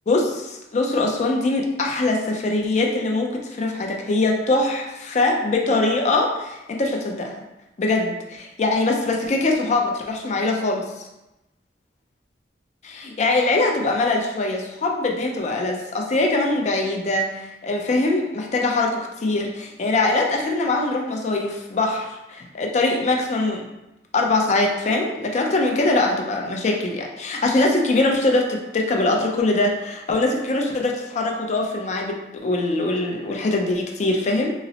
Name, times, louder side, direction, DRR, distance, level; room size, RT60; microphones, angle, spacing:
voice 1, 0.1-7.3 7.8-10.8 12.8-23.7 24.1-34.5, left 2 dB, 40° left, 1 dB, 0.4 m, -22 dB
3.8 x 2.0 x 2.7 m, 0.95 s
head